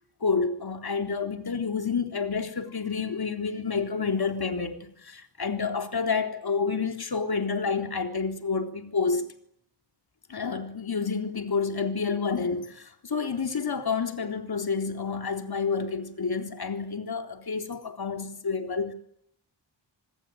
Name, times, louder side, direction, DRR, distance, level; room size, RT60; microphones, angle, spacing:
voice 1, 0.2-9.3 10.3-18.9, left 5 dB, 55° left, 3.8 m, -29 dB
27.0 x 20.5 x 9.5 m
wide cardioid pair, 80°, 44 cm